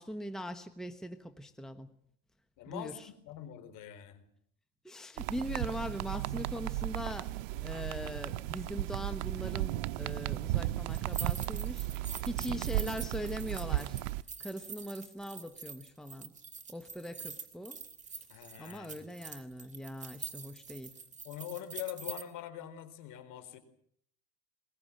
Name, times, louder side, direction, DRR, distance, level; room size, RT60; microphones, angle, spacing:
voice 1, 0.0-1.9 2.7-3.1 4.8-14.0 14.4-16.3 16.7-17.8 18.6-21.0, equal, ahead, 1.1 m, -41 dB
voice 2, 2.6-4.2 18.3-19.0 21.2-23.6, left 11 dB, 55° left, 4.4 m, -43 dB
sound 1, 5.2-14.2, right 16 dB, 80° right, 0.9 m, -35 dB
sound 2, 10.9-22.2, right 5 dB, 20° right, 3.0 m, -45 dB
22.0 x 20.5 x 9.0 m
supercardioid pair, 130°, 38 cm